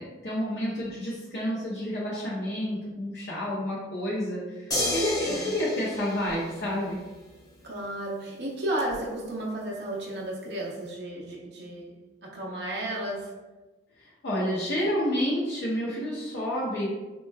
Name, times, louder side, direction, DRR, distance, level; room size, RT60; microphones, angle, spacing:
voice 1, 0.0-7.0 14.0-16.9, equal, 65° left, -6 dB, 0.7 m, -30 dB
sound 1, 4.7-7.2 8.9-9.0, left 1 dB, 20° left, 0.7 m, -31 dB
voice 2, 7.6-11.9 12.2-13.3, right 1 dB, 60° right, -4 dB, 0.7 m, -33 dB
4.2 x 3.0 x 2.3 m, 1.2 s
head